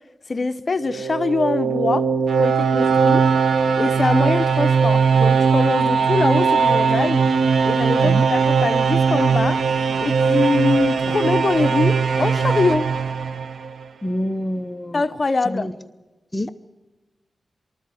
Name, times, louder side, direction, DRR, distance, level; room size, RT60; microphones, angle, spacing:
voice 1, 0.3-2.1 2.4-3.3 3.8-7.3 7.6-9.6 10.0-12.9 14.9-15.7, left 3 dB, 35° left, 10 dB, 1.0 m, -23 dB
sound 1, 0.8-13.8, right 5 dB, 85° right, 0.9 m, -19 dB
voice 2, 14.0-15.0 15.4-15.7 16.3-16.5, left 1 dB, 10° left, 6 dB, 0.7 m, -26 dB
24.5 x 13.0 x 9.9 m, 1.2 s
wide cardioid pair, 130°, 0 cm